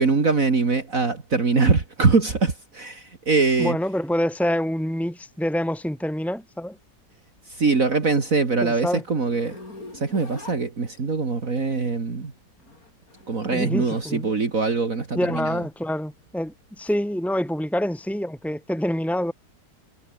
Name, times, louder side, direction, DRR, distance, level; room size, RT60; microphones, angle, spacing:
voice 1, 0.0-3.8 7.5-9.6 9.9-12.3 13.3-15.6, right 4 dB, 50° right, 2.9 m, -22 dB
voice 2, 3.6-6.8 8.6-9.0 13.5-14.3 15.1-19.3, equal, ahead, 0.4 m, -26 dB
Zipper (clothing), 9.3-11.3 12.5-14.1 14.5-16.9, left 2 dB, 55° left, 6.6 m, -44 dB
omnidirectional pair, 1.9 m